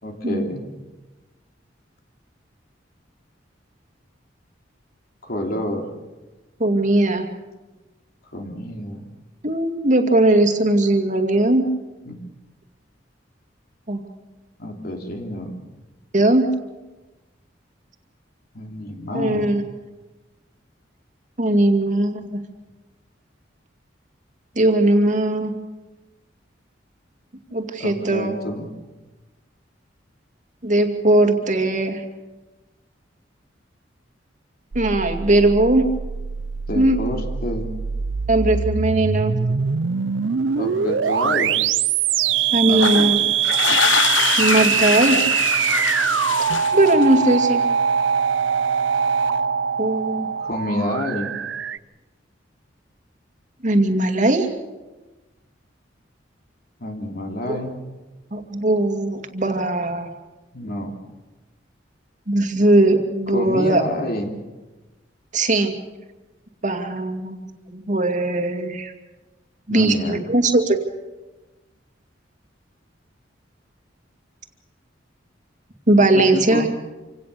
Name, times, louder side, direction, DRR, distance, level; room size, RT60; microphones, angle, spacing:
voice 1, 0.0-0.7 5.2-5.9 8.3-9.0 12.0-12.2 14.6-15.6 18.5-19.5 27.8-28.7 36.7-37.7 40.5-41.6 42.7-43.1 50.4-51.3 56.8-57.8 60.5-61.0 63.3-64.3 69.7-70.2 76.1-76.7, left 1 dB, 55° left, 3 dB, 3.2 m, -28 dB
voice 2, 6.6-7.3 9.4-11.6 13.9-14.0 16.1-16.5 19.1-19.6 21.4-22.4 24.6-25.5 27.5-28.3 30.6-32.0 34.7-35.9 36.7-37.0 38.3-39.3 42.5-43.2 44.4-45.2 46.7-47.6 49.8-50.3 53.6-54.5 57.5-57.6 58.3-60.1 62.3-63.8 65.3-65.7 66.6-67.4 67.7-68.9 69.7-70.8 75.9-76.7, right 1 dB, 45° right, 6 dB, 2.4 m, -19 dB
sound 1, 34.7-51.8, right 7 dB, 80° right, 0.6 m, -23 dB
sound 2, 42.7-47.3, left 7 dB, 90° left, 0.8 m, -24 dB
27.0 x 17.5 x 6.9 m, 1.1 s
head